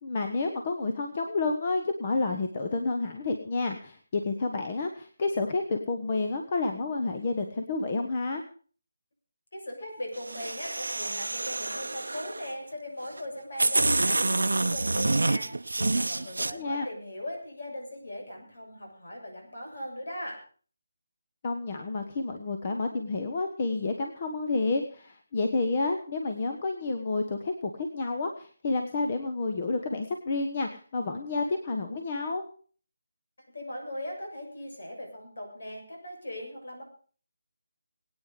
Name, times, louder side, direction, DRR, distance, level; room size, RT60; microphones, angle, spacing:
voice 1, 0.0-8.4 16.4-16.9 21.4-32.4, left 3 dB, 35° left, 5 dB, 1.3 m, -30 dB
voice 2, 9.5-20.4 33.5-36.8, left 1 dB, 70° left, 2 dB, 7.2 m, -39 dB
sound 1, 10.2-12.5 13.2-13.3 13.6-16.5, right 2 dB, 85° right, 0.8 m, -27 dB
20.5 x 9.3 x 5.1 m, 0.42 s
figure-of-eight pair, 165°, 0 cm